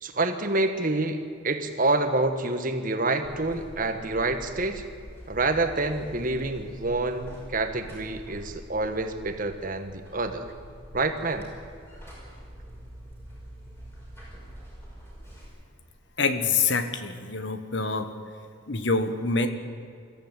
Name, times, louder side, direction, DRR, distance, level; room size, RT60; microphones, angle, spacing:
voice 1, 0.0-4.8 5.3-10.5 10.9-11.5, right 2 dB, 40° right, 7 dB, 1.4 m, -27 dB
Buzz, 3.2-15.5, equal, 10° left, 5.9 m, -45 dB
voice 2, 16.2-18.1 18.7-19.5, left 4 dB, 55° left, 9 dB, 1.5 m, -26 dB
23.0 x 14.5 x 9.0 m, 2.3 s
head